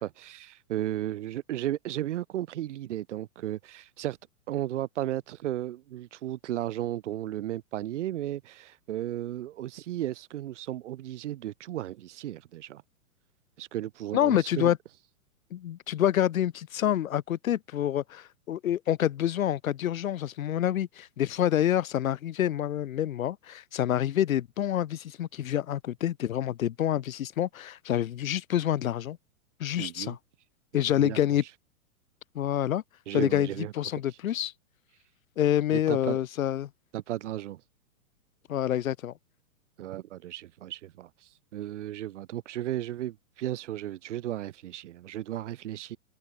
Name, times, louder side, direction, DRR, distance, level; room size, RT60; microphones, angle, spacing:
voice 1, 0.0-4.2 4.5-12.8 13.6-14.7 29.8-30.2 30.9-31.2 33.1-33.7 35.7-36.2 36.9-37.6 39.8-41.1 41.5-46.0, right 13 dB, 55° right, 5.8 m, -34 dB
voice 2, 14.1-14.8 15.5-29.2 29.6-30.2 30.7-31.4 32.4-32.8 33.1-34.5 35.4-36.7 38.5-39.1, left 11 dB, 70° left, 1.8 m, -27 dB
hypercardioid pair, 160°, 43 cm